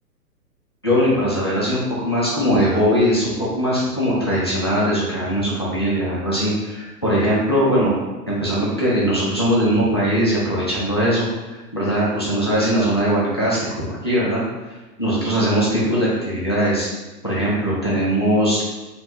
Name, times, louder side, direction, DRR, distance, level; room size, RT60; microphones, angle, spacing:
voice 1, 0.8-7.9 8.3-11.2 11.5-14.4 15.0-16.9 17.2-18.6, equal, 20° left, -8 dB, 0.4 m, -20 dB
3.2 x 2.1 x 4.2 m, 1.1 s
figure-of-eight pair, 120°, 49 cm